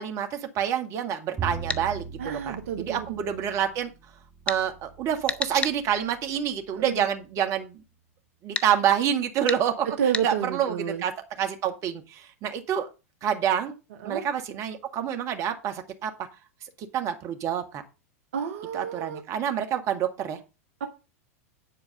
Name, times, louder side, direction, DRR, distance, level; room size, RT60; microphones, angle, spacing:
voice 1, 0.0-3.9 4.5-7.8 8.4-11.1 11.4-12.9 13.2-13.8 14.0-16.1 16.8-17.8 18.7-20.4, right 9 dB, 40° right, 7 dB, 1.9 m, -27 dB
Bowed string instrument, 1.4-7.6, right 5 dB, 20° right, 1.7 m, -41 dB
sound 1, 1.7-1.8 4.5-4.6 5.3-5.8 8.5-8.7 9.5-9.6 10.1-10.3, left 4 dB, 15° left, 0.8 m, -29 dB
voice 2, 2.2-3.0 6.8-7.0 10.0-11.0 14.0-14.2 18.3-19.2 20.8-20.9, right 7 dB, 65° right, 6 dB, 1.4 m, -29 dB
10.0 x 4.7 x 6.6 m, 0.29 s
hypercardioid pair, 95°, 8 cm